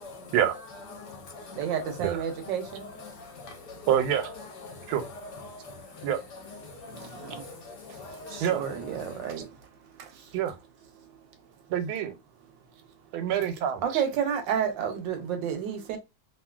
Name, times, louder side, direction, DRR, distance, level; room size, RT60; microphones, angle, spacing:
voice 1, 0.0-9.5, left 3 dB, 70° left, 1.1 m, -44 dB
voice 2, 1.6-2.9 7.0-7.4 8.3-9.5 13.8-16.0, right 8 dB, 75° right, 1.2 m, -30 dB
voice 3, 3.9-4.3 4.9-5.0 6.0-6.2 8.4-8.6 10.3-10.5 11.7-12.1 13.1-13.8, right 10 dB, 90° right, 1.4 m, -26 dB
3.0 x 2.6 x 2.2 m
omnidirectional pair, 2.2 m